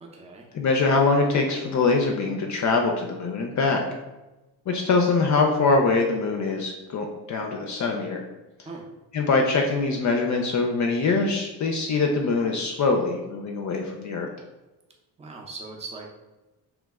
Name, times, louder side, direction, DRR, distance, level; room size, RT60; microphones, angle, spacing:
voice 1, 0.0-0.5 8.6-8.9 15.2-16.1, right 3 dB, 15° right, 0 dB, 0.6 m, -39 dB
voice 2, 0.5-3.8 4.7-8.2 9.1-14.3, left 3 dB, 45° left, 2 dB, 0.5 m, -23 dB
3.1 x 2.0 x 3.5 m, 1.1 s
cardioid pair, 80°, 41 cm